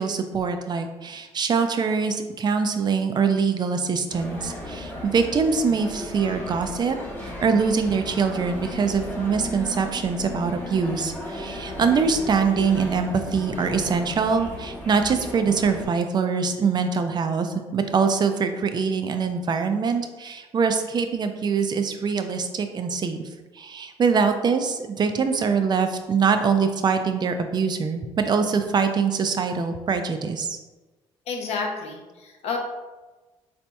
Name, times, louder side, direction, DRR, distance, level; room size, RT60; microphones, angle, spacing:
voice 1, 0.0-23.2 23.5-30.6, right 5 dB, 40° right, 7 dB, 0.3 m, -23 dB
sound 1, 4.1-15.9, left 1 dB, 15° left, 0.8 m, -35 dB
voice 2, 31.3-32.6, left 4 dB, 70° left, 2 dB, 0.6 m, -30 dB
4.0 x 2.8 x 2.2 m, 1.2 s
cardioid pair, 80°, 11 cm